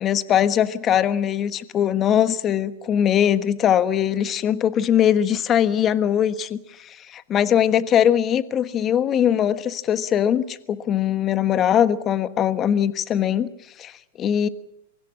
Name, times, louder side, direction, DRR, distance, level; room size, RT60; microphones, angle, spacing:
voice 1, 0.0-13.5 13.8-13.9 14.2-14.5, left 9 dB, 30° left, 13 dB, 1.3 m, -21 dB
24.0 x 16.5 x 9.8 m, 0.81 s
hypercardioid pair, 120°, 0 cm